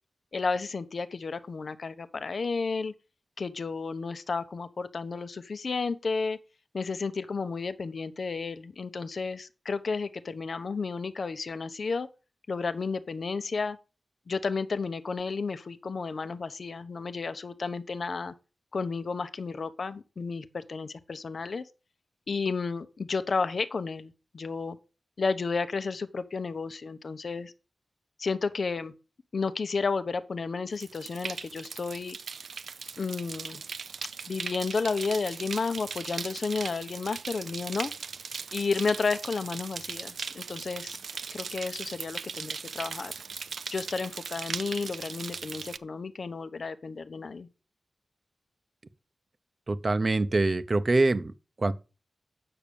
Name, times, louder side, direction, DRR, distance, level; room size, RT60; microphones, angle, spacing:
voice 1, 0.3-2.9 3.4-6.4 6.7-12.1 12.5-13.8 14.3-18.3 18.7-21.7 22.3-24.8 25.2-27.5 28.2-28.9 29.3-32.2 33.0-33.6 34.3-37.9 38.5-41.0 41.3-43.1 43.7-47.5, left 4 dB, 60° left, 0.8 m, -32 dB
sound 1, 30.7-45.8, right 5 dB, 85° right, 0.6 m, -39 dB
voice 2, 49.7-51.3 51.6-51.7, right 2 dB, 40° right, 0.8 m, -24 dB
8.8 x 6.4 x 6.9 m
wide cardioid pair, 95°, 0 cm